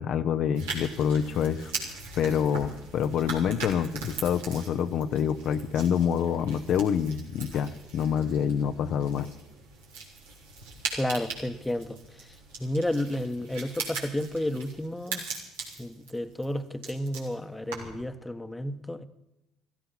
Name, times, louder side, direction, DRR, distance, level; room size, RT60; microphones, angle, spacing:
voice 1, 0.0-1.7 2.2-9.3, left 8 dB, 60° left, 0.8 m, -27 dB
sound 1, 0.5-18.1, right 4 dB, 85° right, 3.6 m, -40 dB
voice 2, 10.9-12.0 12.6-15.2 15.8-19.0, left 1 dB, 10° left, 1.2 m, -31 dB
15.5 x 15.0 x 5.9 m
hypercardioid pair, 60°, 0 cm